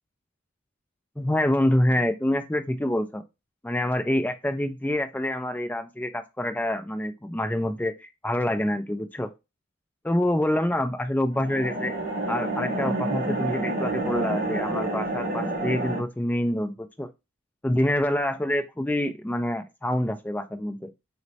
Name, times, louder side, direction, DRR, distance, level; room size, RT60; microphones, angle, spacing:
voice 1, 1.2-3.2 3.6-9.3 10.0-11.9 12.3-17.1 17.6-20.8, left 1 dB, 10° left, 6 dB, 0.3 m, -26 dB
sound 1, 11.3-16.0, right 2 dB, 40° right, 1.0 m, -28 dB
3.1 x 3.1 x 2.7 m, 0.24 s
head